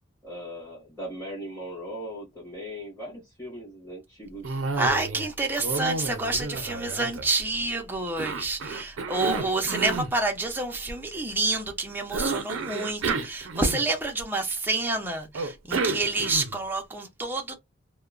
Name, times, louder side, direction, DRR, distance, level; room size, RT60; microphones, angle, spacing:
voice 1, 0.2-4.6, equal, 15° left, 1.3 m, -39 dB
Cough, 4.4-5.3 5.6-7.6 8.2-10.1 12.1-14.1 15.3-16.7, right 3 dB, 70° right, 0.5 m, -31 dB
voice 2, 4.8-17.5, right 2 dB, 10° right, 0.5 m, -28 dB
2.8 x 2.1 x 2.4 m
head